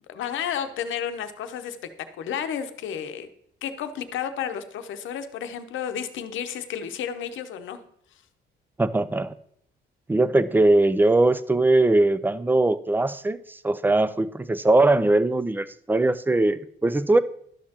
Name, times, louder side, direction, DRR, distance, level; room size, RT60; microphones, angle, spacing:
voice 1, 0.1-1.9 2.2-3.3 3.6-7.8, left 8 dB, 75° left, 8 dB, 0.8 m, -32 dB
voice 2, 8.8-9.3 10.1-17.2, right 2 dB, 10° right, 14 dB, 0.4 m, -21 dB
11.5 x 6.4 x 2.9 m, 0.67 s
cardioid pair, 90°, 20 cm